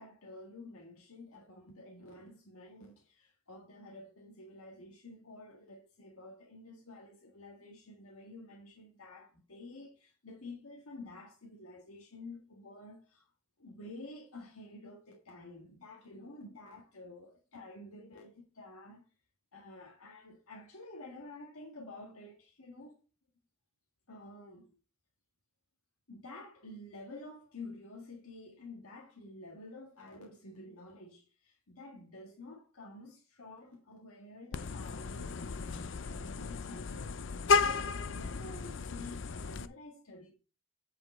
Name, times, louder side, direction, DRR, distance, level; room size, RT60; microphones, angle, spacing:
voice 1, 0.0-13.2 13.6-19.1 19.5-23.0 24.1-24.7 26.1-40.3, left 2 dB, 90° left, 1.7 m, -50 dB
Vehicle horn car horn honking, 34.5-39.7, left 4 dB, 55° left, 0.5 m, -33 dB
8.4 x 5.0 x 4.4 m
head